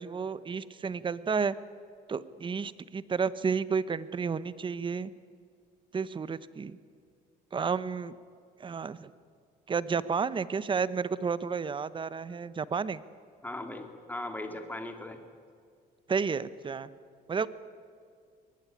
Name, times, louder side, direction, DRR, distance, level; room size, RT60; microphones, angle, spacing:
voice 1, 0.0-1.6 2.1-5.1 5.9-6.8 7.5-8.1 8.6-9.1 9.7-13.0 16.1-16.9 17.3-17.5, right 5 dB, 30° right, 16 dB, 1.0 m, -31 dB
voice 2, 13.4-15.2, left 1 dB, 10° left, 5 dB, 2.9 m, -38 dB
23.0 x 19.5 x 9.7 m, 2.1 s
cardioid pair, 110°, 17 cm